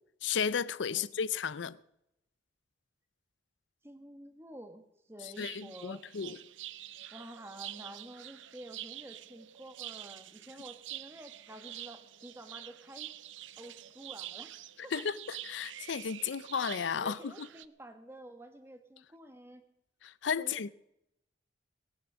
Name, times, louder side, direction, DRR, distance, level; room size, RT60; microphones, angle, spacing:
voice 1, 0.2-1.8 5.2-6.4 14.9-17.5 20.0-20.7, left 7 dB, 75° left, 0.5 m, -34 dB
voice 2, 3.8-4.8 5.1-6.4 7.1-13.1 13.6-14.5 14.8-15.0 17.0-19.6 20.4-20.7, right 1 dB, 15° right, 1.5 m, -50 dB
sound 1, 5.3-17.7, right 13 dB, 85° right, 0.6 m, -47 dB
19.0 x 9.5 x 6.2 m
head